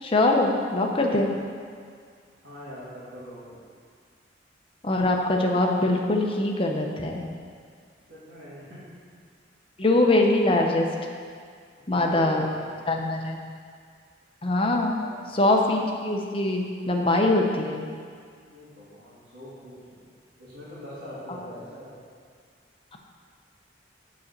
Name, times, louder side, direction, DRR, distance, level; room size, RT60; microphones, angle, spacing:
voice 1, 0.0-1.3 4.8-7.2 9.8-10.9 11.9-12.5 12.9-13.4 14.4-15.0 15.3-17.8 21.3-21.4, left 2 dB, 30° left, 1 dB, 0.7 m, -23 dB
voice 2, 2.4-3.6 8.1-8.8 11.7-13.2 15.0-15.4 18.5-19.7 20.4-21.9, equal, 80° right, -13 dB, 2.1 m, -43 dB
7.2 x 4.2 x 6.6 m, 2.1 s
head